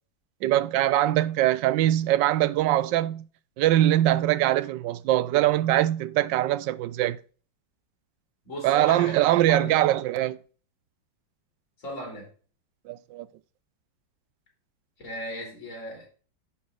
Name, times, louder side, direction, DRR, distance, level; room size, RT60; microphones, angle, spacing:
voice 1, 0.4-3.2 3.6-7.2 8.6-10.4 12.9-13.3, right 14 dB, 75° right, 1.2 m, -22 dB
voice 2, 8.5-9.8 11.8-12.3 15.0-16.1, equal, 40° left, 3.7 m, -36 dB
11.0 x 4.3 x 3.6 m
omnidirectional pair, 2.1 m